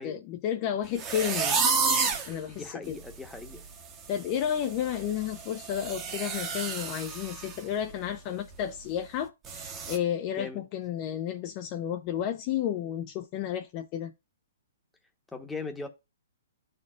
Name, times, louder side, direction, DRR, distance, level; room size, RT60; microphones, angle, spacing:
voice 1, 0.0-3.0 4.1-14.1, left 10 dB, 30° left, 0.6 m, -32 dB
sound 1, 1.0-2.3 2.9-3.0 3.4-3.7 3.9-7.6 7.9-8.1 8.5-8.6 9.4-10.0, right 5 dB, 20° right, 1.0 m, -30 dB
voice 2, 2.5-3.6 10.4-10.6 15.3-15.9, left 4 dB, 5° left, 1.1 m, -39 dB
11.5 x 4.4 x 2.4 m
hypercardioid pair, 155°, 0 cm